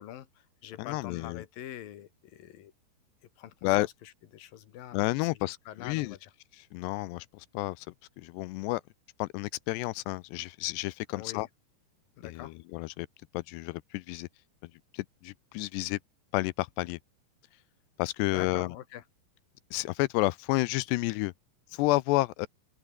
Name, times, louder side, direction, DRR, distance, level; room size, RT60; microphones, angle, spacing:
voice 1, 0.0-2.7 3.4-6.3 11.2-11.5 12.2-12.6 18.3-19.0, left 12 dB, 60° left, 3.1 m, -45 dB
voice 2, 0.8-1.4 3.6-3.9 4.9-6.2 6.7-7.9 8.2-8.8 9.2-11.5 12.2-13.1 13.3-14.3 14.9-16.0 16.3-17.0 18.0-18.7 19.7-21.3 21.7-22.5, left 20 dB, 85° left, 2.6 m, -30 dB
open air
omnidirectional pair, 5.1 m